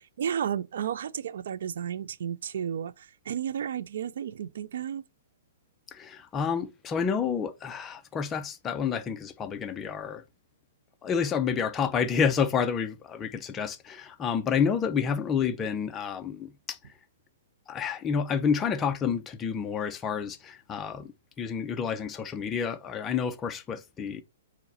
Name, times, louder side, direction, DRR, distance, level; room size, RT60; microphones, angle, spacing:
voice 1, 0.0-5.0, right 9 dB, 70° right, 0.3 m, -33 dB
voice 2, 5.9-10.2 11.0-16.8 17.7-24.2, left 6 dB, 15° left, 0.4 m, -29 dB
4.7 x 2.0 x 4.1 m
hypercardioid pair, 145°, 0 cm